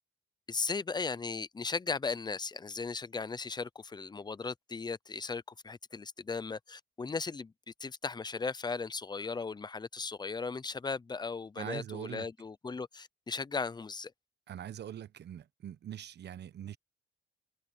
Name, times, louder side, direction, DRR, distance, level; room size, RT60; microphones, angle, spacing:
voice 1, 0.5-14.1, left 4 dB, 20° left, 0.7 m, -37 dB
voice 2, 11.6-12.3 14.5-16.8, right 10 dB, 60° right, 1.1 m, -42 dB
cardioid pair, 90°, 20 cm